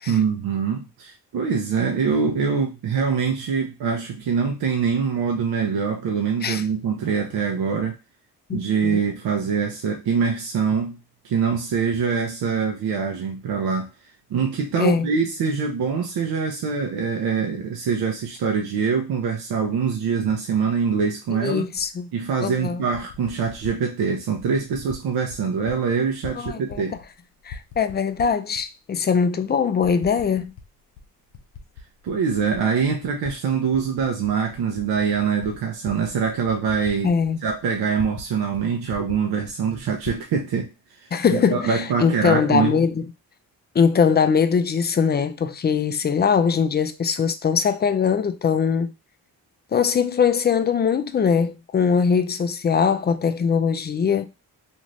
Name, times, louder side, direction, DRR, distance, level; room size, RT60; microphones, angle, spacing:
voice 1, 0.1-7.9 8.5-11.0 11.2-13.9 14.3-21.7 22.1-27.0 32.0-37.1 37.4-40.7 41.3-42.8, right 6 dB, 65° right, 0.7 m, -24 dB
voice 2, 8.5-9.0 14.8-15.1 21.3-22.1 22.4-22.8 26.4-26.8 27.5-30.5 37.0-37.4 41.1-43.1 43.7-48.9 49.7-54.3, left 6 dB, 25° left, 0.3 m, -21 dB
Typing, 21.7-21.9 22.7-23.8 24.4-25.0 25.3-25.8 26.0-27.1 27.4-28.6 29.2-29.3 29.8-30.7 31.0-33.3 33.7-38.3 38.5-38.6 38.9-40.2, left 5 dB, 80° left, 0.6 m, -41 dB
2.6 x 2.4 x 3.1 m
supercardioid pair, 45°, 42 cm